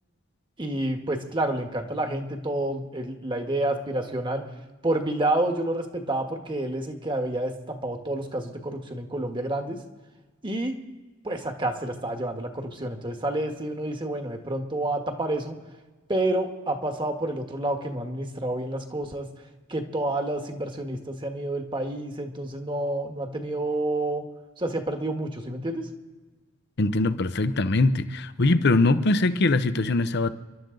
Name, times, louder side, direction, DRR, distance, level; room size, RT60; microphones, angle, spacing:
voice 1, 0.6-4.4 4.8-9.8 10.4-10.8 11.2-15.6 16.1-19.3 19.7-24.3 24.6-25.9, right 1 dB, 25° right, 4 dB, 1.6 m, -29 dB
voice 2, 26.8-30.3, left 2 dB, 60° left, 12 dB, 0.8 m, -22 dB
30.0 x 12.0 x 3.9 m, 1.3 s
head